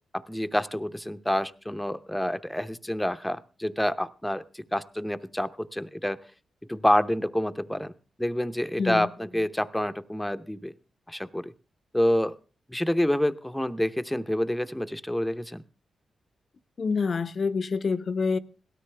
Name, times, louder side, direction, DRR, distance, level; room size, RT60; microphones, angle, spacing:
voice 1, 0.1-6.2 6.7-7.9 8.2-10.7 11.1-11.5 11.9-12.4 12.7-15.6, left 1 dB, 5° left, 0.7 m, -28 dB
voice 2, 8.8-9.1 16.8-18.4, left 5 dB, 55° left, 0.7 m, -27 dB
17.5 x 13.0 x 3.3 m
cardioid pair, 60°, 0 cm